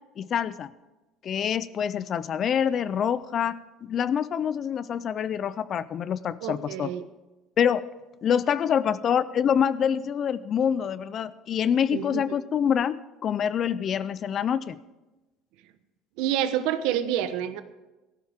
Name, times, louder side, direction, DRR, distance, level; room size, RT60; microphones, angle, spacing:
voice 1, 0.2-0.7 1.2-3.5 3.8-6.9 7.6-7.8 8.2-14.8, left 8 dB, 35° left, 17 dB, 0.5 m, -26 dB
voice 2, 6.4-7.1 11.9-12.4 16.2-17.6, right 11 dB, 75° right, 11 dB, 1.0 m, -28 dB
17.0 x 14.5 x 3.6 m, 1.1 s
cardioid pair, 160°, 0 cm